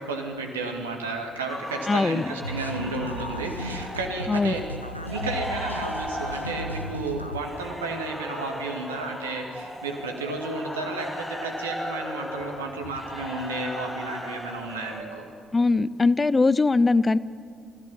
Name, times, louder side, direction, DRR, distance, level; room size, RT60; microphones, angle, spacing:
voice 1, 0.0-4.7 5.1-15.3, right 3 dB, 80° right, 3 dB, 2.1 m, -32 dB
sound 1, 1.5-15.0, left 1 dB, 5° left, 3.6 m, -36 dB
voice 2, 1.9-2.3 4.3-4.5 15.5-17.2, left 3 dB, 25° left, 17 dB, 0.6 m, -21 dB
sound 2, 2.4-7.4, equal, 90° left, 0.7 m, -35 dB
28.0 x 15.5 x 7.3 m, 2.3 s
figure-of-eight pair, 45°, 0 cm